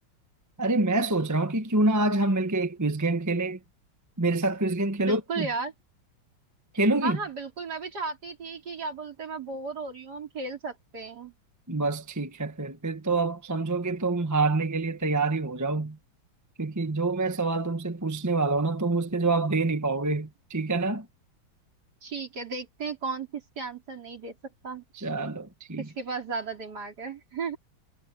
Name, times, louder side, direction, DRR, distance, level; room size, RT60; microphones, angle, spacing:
voice 1, 0.6-3.6 4.2-5.5 6.7-7.2 11.7-16.0 16.6-21.1 24.9-25.9, right 2 dB, 10° right, 0.9 m, -26 dB
voice 2, 5.0-5.7 7.0-11.3 22.0-24.8 25.8-27.6, right 4 dB, 50° right, 4.1 m, -35 dB
omnidirectional pair, 2.2 m